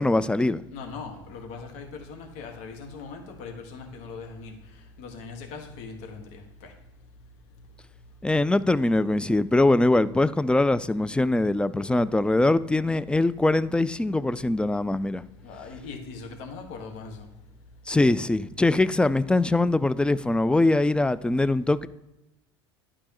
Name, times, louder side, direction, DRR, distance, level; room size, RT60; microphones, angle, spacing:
voice 1, 0.0-0.6 8.2-15.2 17.9-21.9, left 2 dB, 5° left, 0.3 m, -22 dB
voice 2, 0.7-4.5 5.0-6.7 15.4-17.3, left 4 dB, 65° left, 1.7 m, -40 dB
11.5 x 4.8 x 3.0 m
hypercardioid pair, 75°, 14 cm